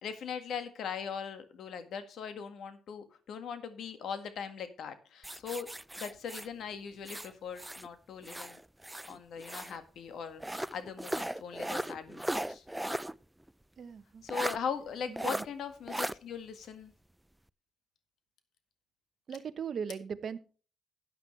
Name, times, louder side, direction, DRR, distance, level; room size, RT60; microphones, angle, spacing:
voice 1, 0.0-5.7 6.0-8.6 9.1-12.6 14.2-16.9, left 6 dB, 75° left, 9 dB, 1.7 m, -40 dB
sound 1, 5.2-7.9 8.2-9.8 10.4-13.1 13.5-13.6 14.3-14.6 15.2-15.5 15.9-16.1, right 1 dB, 5° right, 0.4 m, -37 dB
voice 2, 13.8-14.2 15.1-15.4 19.3-20.4, right 7 dB, 55° right, 11 dB, 0.9 m, -39 dB
13.0 x 9.3 x 3.3 m, 0.37 s
cardioid pair, 95°, 0 cm